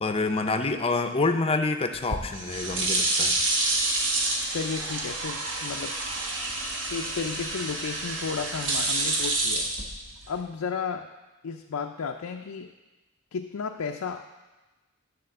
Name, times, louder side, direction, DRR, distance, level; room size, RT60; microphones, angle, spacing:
voice 1, 0.0-3.4, left 3 dB, 25° left, 6 dB, 0.6 m, -27 dB
sound 1, 1.9-10.4, right 2 dB, 60° right, 1.4 m, -28 dB
voice 2, 4.5-5.9 6.9-9.7 10.3-11.1 11.4-12.7 13.3-14.2, left 5 dB, 90° left, 3 dB, 0.5 m, -33 dB
9.9 x 4.2 x 6.6 m, 1.1 s
head